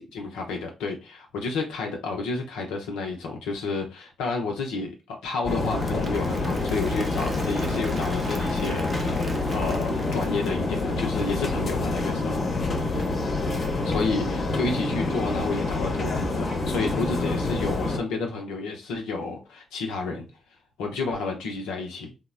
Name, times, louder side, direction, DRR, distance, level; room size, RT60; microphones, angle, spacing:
voice 1, 0.0-12.5 12.7-12.8 13.8-20.3 20.8-22.1, left 4 dB, 85° left, 0.6 m, -31 dB
sound 1, 5.4-18.0, left 2 dB, 55° left, 0.8 m, -27 dB
Applause / Crowd, 5.5-10.8, right 3 dB, 45° right, 0.7 m, -42 dB
3.5 x 2.1 x 2.4 m
hypercardioid pair, 45°, 0 cm